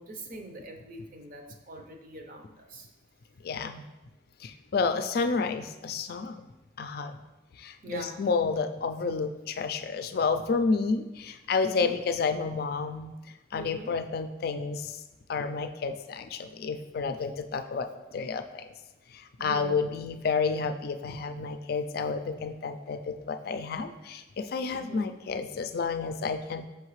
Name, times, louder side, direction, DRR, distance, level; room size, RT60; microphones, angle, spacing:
voice 1, 0.0-2.9 7.8-8.2 11.6-12.0 13.6-14.0 19.4-19.8 24.7-25.1, right 2 dB, 50° right, 3 dB, 0.7 m, -43 dB
voice 2, 3.4-3.8 4.4-6.4 6.8-7.1 7.6-13.1 13.5-15.0 15.3-18.6 19.1-26.7, left 4 dB, 55° left, 8 dB, 0.4 m, -30 dB
5.8 x 5.6 x 3.1 m, 1.0 s
head